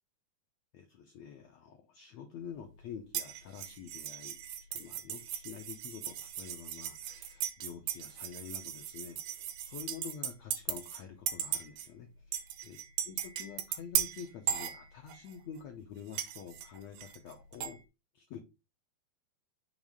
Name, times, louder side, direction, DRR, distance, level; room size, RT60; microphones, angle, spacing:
voice 1, 0.7-12.8 13.1-17.8 18.1-18.4, left 8 dB, 85° left, 4 dB, 1.5 m, -48 dB
sound 1, 3.1-11.0 11.3-11.9 12.3-15.3 16.1-17.8, right 10 dB, 75° right, 2.4 m, -37 dB
6.7 x 3.2 x 5.1 m, 0.27 s
omnidirectional pair, 4.3 m